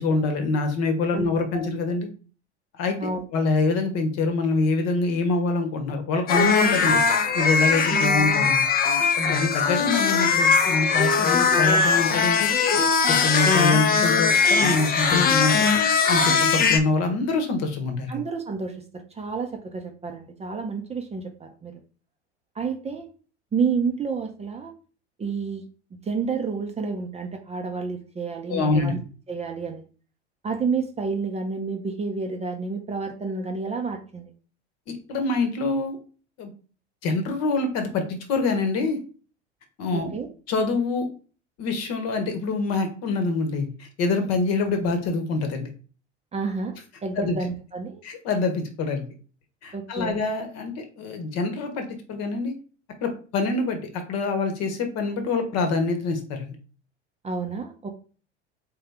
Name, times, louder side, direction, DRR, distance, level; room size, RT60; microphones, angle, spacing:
voice 1, 0.0-2.1 2.8-8.6 9.2-12.5 13.1-15.7 16.1-18.2 28.5-28.9 34.9-36.0 36.4-36.5 37.0-39.0 39.8-40.1 40.5-41.1 41.6-45.7 47.2-47.4 48.0-49.0 49.6-52.5 53.0-56.5, left 3 dB, 45° left, 6 dB, 1.1 m, -25 dB
sound 1, 6.3-16.8, left 5 dB, 25° left, 0.6 m, -20 dB
voice 2, 7.9-8.2 18.1-21.7 22.6-23.1 23.5-24.7 25.2-25.7 26.0-29.0 29.3-29.8 30.4-34.3 39.9-40.3 46.3-48.0 49.7-50.2 57.2-57.9, right 5 dB, 20° right, 4 dB, 0.6 m, -30 dB
3.6 x 3.4 x 3.4 m, 0.39 s
figure-of-eight pair, 75°, 35 cm